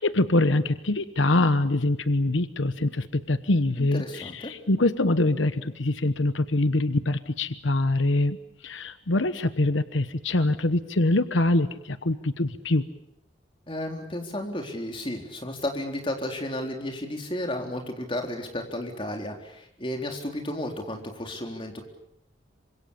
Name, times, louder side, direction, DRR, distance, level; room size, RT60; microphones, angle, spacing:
voice 1, 0.0-8.4 8.6-12.8, left 2 dB, 85° left, 11 dB, 1.1 m, -24 dB
voice 2, 3.8-4.5 13.7-21.8, left 1 dB, 30° left, 2 dB, 3.9 m, -33 dB
27.0 x 25.5 x 7.2 m, 0.77 s
head